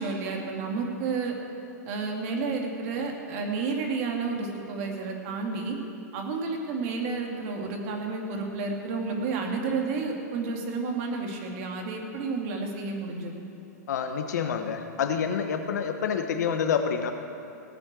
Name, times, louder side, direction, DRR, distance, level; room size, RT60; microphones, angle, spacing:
voice 1, 0.0-1.3 1.8-5.8 6.1-13.4, right 4 dB, 55° right, 1 dB, 2.6 m, -31 dB
voice 2, 13.9-17.1, left 7 dB, 75° left, 6 dB, 1.3 m, -27 dB
18.0 x 6.7 x 7.6 m, 2.9 s
hypercardioid pair, 120°, 9 cm